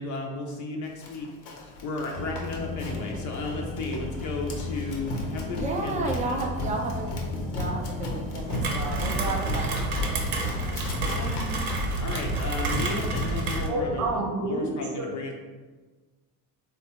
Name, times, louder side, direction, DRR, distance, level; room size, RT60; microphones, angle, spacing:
voice 1, 0.0-6.4 10.6-14.1 14.4-15.3, left 3 dB, 40° left, 1 dB, 0.5 m, -34 dB
Run, 1.0-13.5, left 1 dB, 75° left, 0.8 m, -36 dB
sound 1, 2.1-14.2, left 2 dB, ahead, 0.7 m, -36 dB
voice 2, 5.5-7.1 7.4-10.4, right 2 dB, 20° right, 2 dB, 0.3 m, -32 dB
Rain, 8.5-13.7, right 2 dB, 70° right, 0.8 m, -29 dB
voice 3, 13.7-15.2, right 2 dB, 35° right, 0 dB, 0.8 m, -29 dB
3.5 x 2.2 x 2.8 m, 1.3 s
hypercardioid pair, 70°, 48 cm